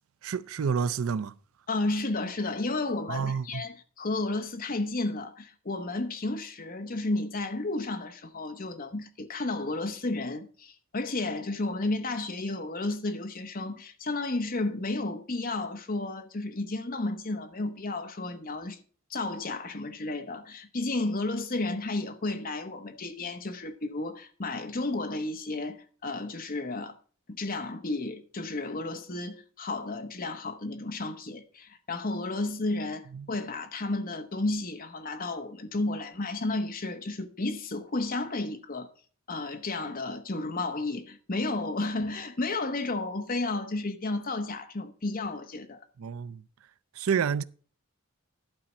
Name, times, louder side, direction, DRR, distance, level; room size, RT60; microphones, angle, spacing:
voice 1, 0.2-1.3 3.1-3.6 33.1-33.3 46.0-46.4 47.0-47.4, right 6 dB, 75° right, 0.4 m, -29 dB
voice 2, 1.7-18.8 19.1-27.0 27.3-38.9 39.3-45.8, left 2 dB, 40° left, 1.1 m, -32 dB
11.5 x 4.2 x 7.0 m
head